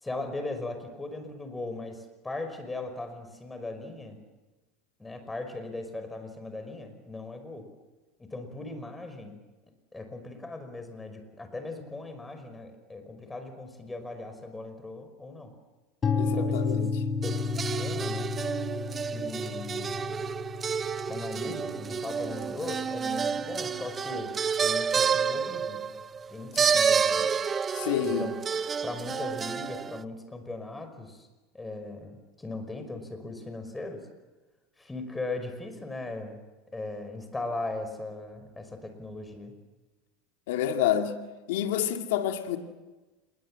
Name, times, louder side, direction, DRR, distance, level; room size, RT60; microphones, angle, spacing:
voice 1, 0.0-4.2 5.0-7.7 8.2-9.4 9.9-15.5 16.2-16.9 17.2-18.3 19.1-20.2 21.1-25.9 26.3-27.3 28.0-28.3 28.8-31.3 31.5-34.0 34.8-36.4 36.7-39.5, left 2 dB, 10° left, 7 dB, 5.4 m, -38 dB
sound 1, 16.0-23.9, left 4 dB, 25° left, 3.6 m, -33 dB
voice 2, 16.2-17.0 26.5-26.6 27.7-28.3 40.5-41.1 41.5-42.6, left 10 dB, 80° left, 4 dB, 2.4 m, -28 dB
sound 2, 17.2-30.0, right 6 dB, 25° right, 0.7 m, -29 dB
27.5 x 21.5 x 7.7 m, 1.2 s
supercardioid pair, 120°, 0 cm